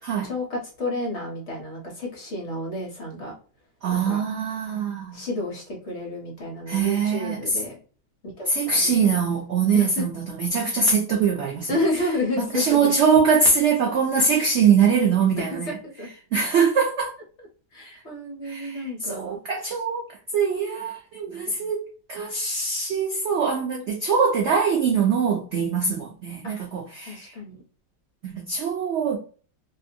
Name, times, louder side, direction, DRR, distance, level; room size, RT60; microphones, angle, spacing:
voice 1, 0.2-3.3 3.9-4.2 5.1-7.8 8.2-9.1 9.7-10.0 11.7-12.9 15.4-16.1 17.7-19.4 21.4-21.7 26.4-26.5 27.0-27.6, left 1 dB, 50° left, 1.0 m, -31 dB
voice 2, 3.8-5.2 6.7-7.6 8.5-11.8 12.4-15.8 16.3-17.1 18.4-20.1 20.3-27.3 28.2-29.2, right 5 dB, 85° right, 0.6 m, -23 dB
2.9 x 2.6 x 2.5 m
omnidirectional pair, 1.9 m